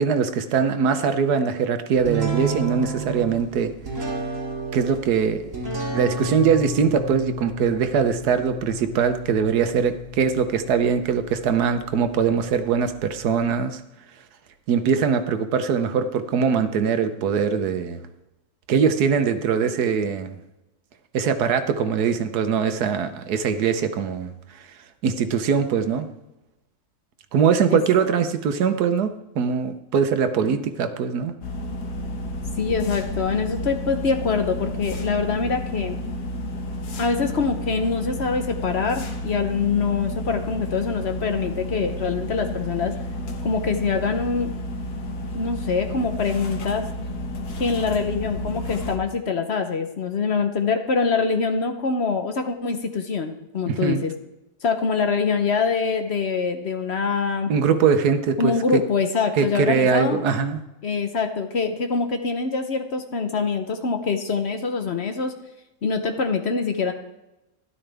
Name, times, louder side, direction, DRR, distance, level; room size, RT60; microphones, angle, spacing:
voice 1, 0.0-3.7 4.7-13.8 14.7-18.0 18.7-20.4 21.1-24.3 25.0-26.1 27.3-31.3 53.7-54.0 57.5-58.8 59.4-60.6, right 6 dB, 85° right, 9 dB, 1.4 m, -22 dB
sound 1, 2.0-13.5, right 2 dB, 55° right, 2.9 m, -33 dB
sound 2, 31.4-49.0, left 1 dB, 90° left, 1.7 m, -31 dB
voice 2, 32.6-36.0 37.0-42.9 43.4-44.5 45.3-46.9 47.6-54.1 54.6-57.5 58.4-60.2 60.8-65.3 65.8-66.9, left 5 dB, 50° left, 6 dB, 1.0 m, -24 dB
12.5 x 11.5 x 3.4 m, 0.95 s
omnidirectional pair, 1.6 m